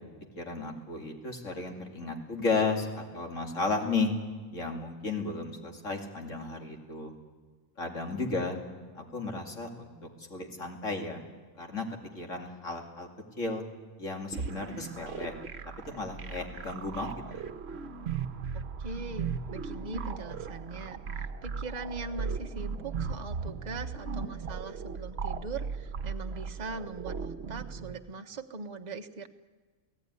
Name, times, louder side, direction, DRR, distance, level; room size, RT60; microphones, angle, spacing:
voice 1, 0.4-4.1 4.5-7.1 7.8-8.6 9.0-11.2 11.6-11.9 12.1-13.1 13.4-13.6 14.0-15.4 15.9-17.4, left 3 dB, 70° left, 2 dB, 3.0 m, -34 dB
sound 1, 14.3-27.9, right 5 dB, 55° right, 1.2 m, -37 dB
voice 2, 18.8-29.3, right 3 dB, 35° right, 6 dB, 1.1 m, -41 dB
28.5 x 17.0 x 9.7 m, 1.4 s
omnidirectional pair, 1.4 m